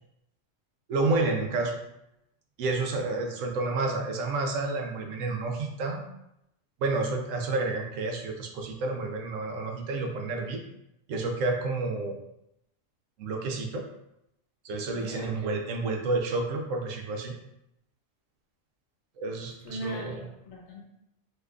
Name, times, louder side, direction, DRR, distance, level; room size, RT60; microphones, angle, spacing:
voice 1, 0.9-1.8 2.6-6.1 6.8-10.6 11.1-12.2 13.2-13.9 14.6-17.3 19.2-20.2, right 3 dB, 80° right, 2 dB, 1.0 m, -30 dB
voice 2, 14.9-15.3 19.6-20.8, right 1 dB, 80° left, -1 dB, 1.2 m, -39 dB
3.4 x 2.9 x 2.4 m, 0.81 s
omnidirectional pair, 1.3 m